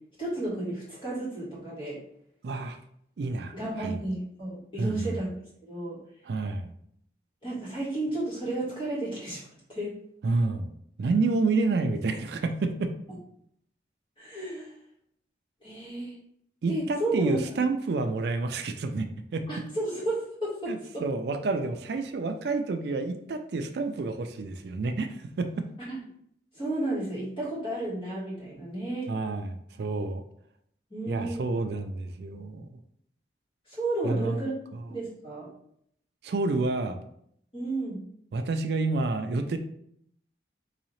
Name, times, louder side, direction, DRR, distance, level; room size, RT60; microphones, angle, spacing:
voice 1, 0.2-2.0 3.5-5.3 5.6-6.0 7.4-10.0 14.2-14.7 15.6-16.2 16.7-17.6 19.5-21.0 25.8-26.0 26.5-29.1 30.9-31.5 33.7-34.5 34.9-35.5 37.5-38.0, right 2 dB, 30° left, -6 dB, 1.6 m, -32 dB
voice 2, 2.4-2.8 3.2-4.0 4.8-5.2 6.2-6.7 10.2-10.7 11.0-12.9 16.6-19.5 20.7-25.7 29.1-30.2 31.1-32.7 34.0-34.5 34.7-34.9 36.2-37.0 38.3-39.6, right 3 dB, 65° right, 7 dB, 0.4 m, -29 dB
3.9 x 2.8 x 3.0 m, 0.69 s
head